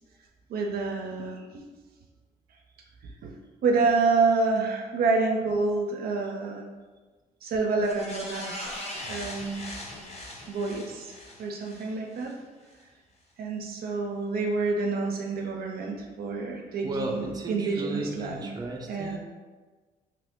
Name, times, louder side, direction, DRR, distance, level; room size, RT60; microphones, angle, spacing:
voice 1, 0.5-1.6 3.2-3.3 3.6-6.6 7.4-9.7 10.5-11.1 11.4-12.3 13.4-18.5 18.9-19.2, right 3 dB, 70° right, 1 dB, 0.5 m, -28 dB
sound 1, 7.8-12.3 12.7-12.8, left 1 dB, 40° left, 0.7 m, -40 dB
voice 2, 16.8-19.2, right 2 dB, 25° right, 0 dB, 0.5 m, -34 dB
2.8 x 2.5 x 3.6 m, 1.3 s
cardioid pair, 90°, 16 cm